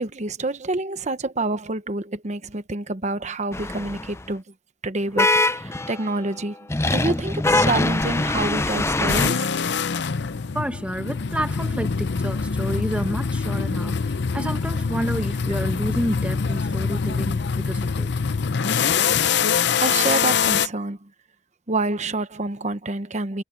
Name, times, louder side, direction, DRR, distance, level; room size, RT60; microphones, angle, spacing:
voice 1, 0.0-4.4 4.8-6.6 6.8-9.5 19.8-21.1 21.7-23.4, right 2 dB, 40° right, 1.0 m, -27 dB
sound 1, 3.5-4.2 5.2-6.1 6.7-9.3, left 2 dB, 15° left, 0.5 m, -22 dB
sound 2, 9.1-20.7, left 6 dB, 65° left, 0.6 m, -24 dB
voice 2, 10.5-18.1, equal, 5° right, 1.4 m, -30 dB
head